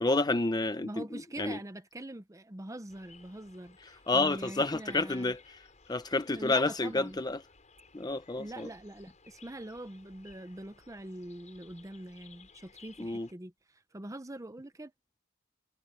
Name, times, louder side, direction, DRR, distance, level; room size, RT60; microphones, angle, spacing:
voice 1, 0.0-1.0 1.4-1.6 4.1-5.6 5.9-7.4 7.9-8.7 13.0-13.3, left 2 dB, 20° left, 0.7 m, -29 dB
voice 2, 0.8-5.3 6.3-7.2 8.4-14.9, right 1 dB, 15° right, 0.8 m, -44 dB
sound 1, 2.9-13.3, left 5 dB, 35° left, 6.5 m, -59 dB
head